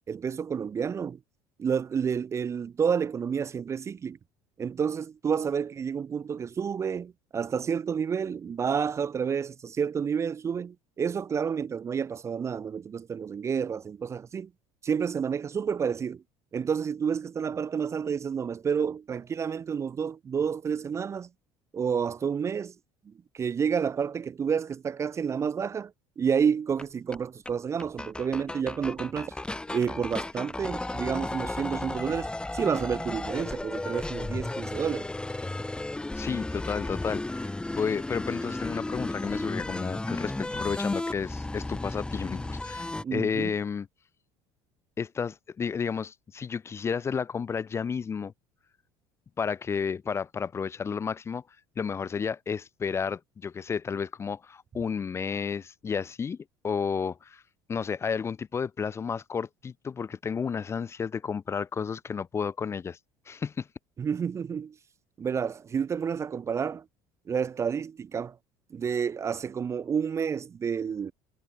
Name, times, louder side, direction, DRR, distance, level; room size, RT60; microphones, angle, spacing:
voice 1, 0.1-1.2 1.6-4.2 4.6-14.5 14.8-16.2 16.5-21.3 21.7-22.7 23.1-29.3 29.7-35.1 43.0-43.5 64.0-64.8 65.2-66.8 67.3-68.4 68.7-71.1, right 7 dB, 30° right, 0.5 m, -30 dB
sound 1, 26.8-26.9 27.1-27.2 27.4-27.5 27.8-43.0, left 2 dB, 10° left, 1.4 m, -34 dB
voice 2, 36.1-43.9 45.0-48.3 49.4-51.4 51.8-56.4 56.6-57.4 57.7-63.0 63.3-63.7, left 6 dB, 25° left, 0.5 m, -32 dB
supercardioid pair, 110°, 10 cm